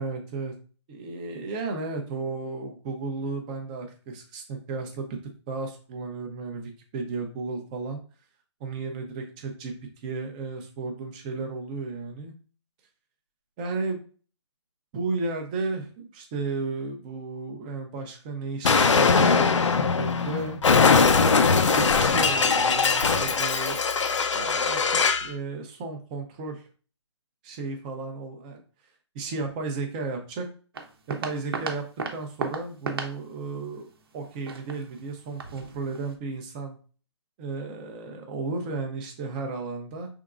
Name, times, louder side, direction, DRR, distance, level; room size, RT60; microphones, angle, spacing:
voice 1, 0.0-0.5 0.9-5.2 5.5-8.0 8.6-9.7 10.0-12.3 13.6-14.0 14.9-20.6 21.7-23.8 24.3-24.8 25.2-26.6 27.4-28.6 29.1-30.4 31.1-31.8 32.1-33.9 34.1-36.8 37.4-40.1, right 3 dB, 15° right, 4 dB, 0.7 m, -33 dB
Explosion, 18.6-25.3, left 5 dB, 80° left, 0.6 m, -21 dB
sound 1, 30.7-36.1, right 4 dB, 50° right, 0.9 m, -37 dB
5.7 x 3.6 x 2.5 m, 0.39 s
hypercardioid pair, 165°, 15 cm